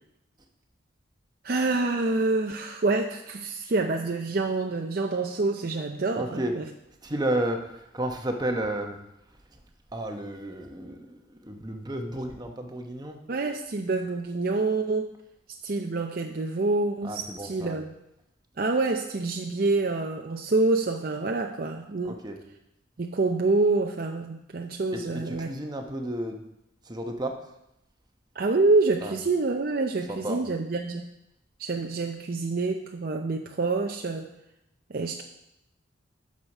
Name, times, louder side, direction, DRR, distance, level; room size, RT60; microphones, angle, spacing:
voice 1, 1.4-6.7 13.3-15.1 15.6-17.9 18.6-22.2 23.0-25.5 28.4-31.1 31.6-34.3 34.9-35.2, right 3 dB, 50° right, 3 dB, 0.5 m, -27 dB
voice 2, 6.2-6.6 7.0-9.0 9.9-13.2 17.0-17.8 22.0-22.4 24.9-26.4 26.8-27.4 29.0-29.1 30.1-30.4, right 1 dB, 20° right, 4 dB, 0.9 m, -32 dB
8.9 x 6.4 x 5.4 m, 0.85 s
head